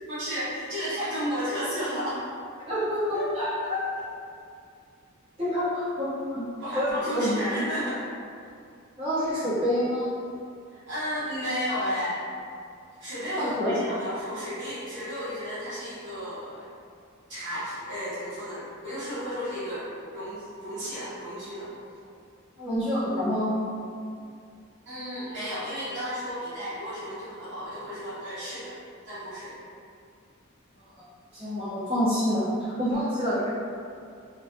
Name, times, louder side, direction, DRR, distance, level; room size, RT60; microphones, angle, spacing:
voice 1, 0.1-2.2 3.1-3.3 6.6-8.0 10.7-12.2 13.0-16.7 17.3-21.7 24.9-28.7 29.0-29.5, equal, 60° right, -12 dB, 0.9 m, -33 dB
voice 2, 2.6-4.1 5.4-6.4 6.7-7.6 9.0-10.1 13.4-13.8 22.6-23.5 31.3-33.5, equal, 30° right, -13 dB, 1.1 m, -27 dB
2.4 x 2.1 x 2.8 m, 2.4 s
head